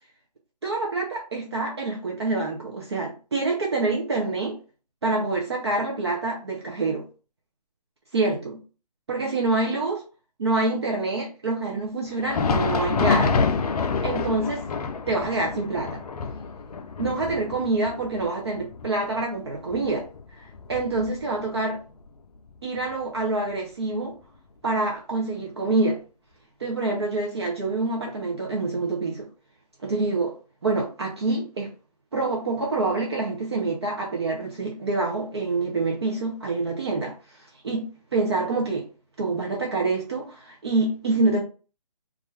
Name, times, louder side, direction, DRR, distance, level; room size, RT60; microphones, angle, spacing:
voice 1, 0.6-4.6 5.0-7.0 8.1-8.6 9.1-10.0 10.4-13.4 14.0-14.6 15.1-16.0 17.0-20.1 20.3-21.8 22.6-24.1 24.6-26.0 26.6-29.3 29.8-30.3 30.6-31.7 32.1-38.9 39.2-41.4, right 3 dB, 40° right, -1 dB, 0.5 m, -26 dB
Thunder, 12.1-21.6 21.9-22.1 22.8-22.9 23.9-24.0, left 4 dB, 70° left, 0.5 m, -28 dB
2.4 x 2.3 x 3.0 m, 0.36 s
hypercardioid pair, 170°, 21 cm